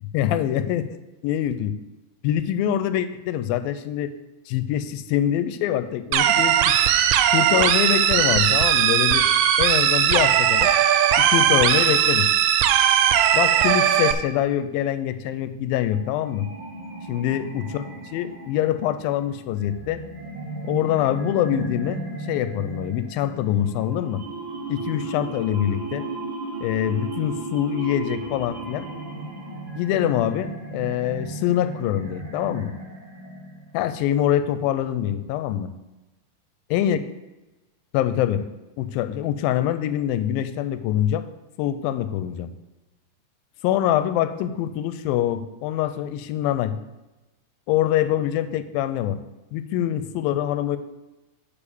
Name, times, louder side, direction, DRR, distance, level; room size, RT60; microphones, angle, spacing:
voice 1, 0.1-1.0 1.2-1.8 2.2-4.1 4.5-6.8 7.3-9.3 9.6-10.7 11.2-12.3 13.3-16.5 17.1-17.8 18.1-20.0 20.7-22.0 22.3-24.2 24.7-26.1 26.6-28.9 29.7-32.7 33.7-35.7 36.7-37.0 37.9-38.5 38.8-41.3 41.6-42.5 43.6-46.8 47.7-49.2 49.5-50.8, left 11 dB, 90° left, 11 dB, 2.3 m, -24 dB
sound 1, 6.1-14.1, right 10 dB, 80° right, 2.3 m, -18 dB
sound 2, 15.9-33.8, right 2 dB, 50° right, 1.6 m, -35 dB
7.0 x 5.0 x 7.0 m, 1.1 s
omnidirectional pair, 4.1 m